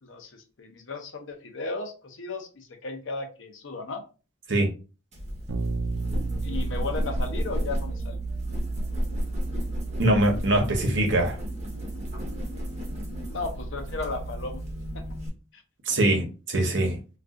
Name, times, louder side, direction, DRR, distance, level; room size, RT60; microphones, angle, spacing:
voice 1, 0.0-4.0 6.4-8.2 13.3-14.6 14.9-15.0, left 3 dB, 70° left, 0.7 m, -35 dB
sound 1, 5.1-15.3, equal, 35° right, 1.0 m, -33 dB
Bass guitar, 5.5-15.3, right 4 dB, 85° right, 0.5 m, -35 dB
voice 2, 10.0-11.4 15.9-17.0, right 1 dB, 65° right, 0.9 m, -23 dB
2.5 x 2.4 x 3.6 m
head